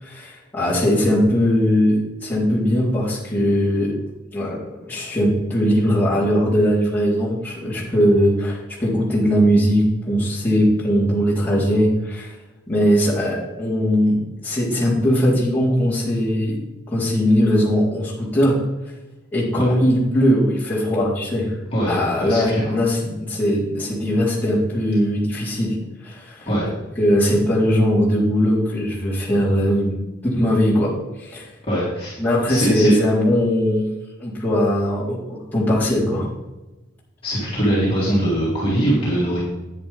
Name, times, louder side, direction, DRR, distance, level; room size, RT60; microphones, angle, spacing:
voice 1, 0.0-4.0 4.3-12.3 12.7-16.6 16.9-18.6 19.3-21.5 21.9-25.8 26.0-26.5 27.0-30.0 30.2-30.9 31.2-31.5 32.2-36.3, equal, 10° left, -9 dB, 4.0 m, -20 dB
voice 2, 21.7-22.7 26.5-26.7 31.7-32.1 32.5-32.9 37.2-39.4, right 1 dB, 30° left, -8 dB, 3.1 m, -22 dB
10.5 x 9.7 x 3.6 m, 1.0 s
head